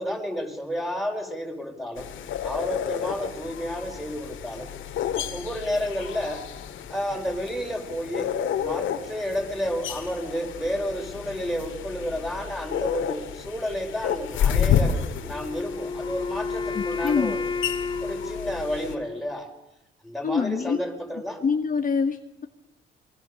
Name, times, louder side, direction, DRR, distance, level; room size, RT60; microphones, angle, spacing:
voice 1, 0.0-2.1 2.4-4.7 5.3-6.4 6.9-17.5 18.0-19.5 20.0-21.4, equal, ahead, 3 dB, 5.7 m, -31 dB
sound 1, 2.0-19.0, left 8 dB, 80° left, 2.4 m, -31 dB
Wind instrument woodwind instrument, 15.3-19.4, left 4 dB, 25° left, 1.3 m, -31 dB
voice 2, 16.7-17.4 20.2-20.8 21.4-22.5, left 5 dB, 45° left, 7 dB, 1.4 m, -25 dB
27.0 x 22.0 x 7.0 m, 0.89 s
cardioid pair, 90°, 20 cm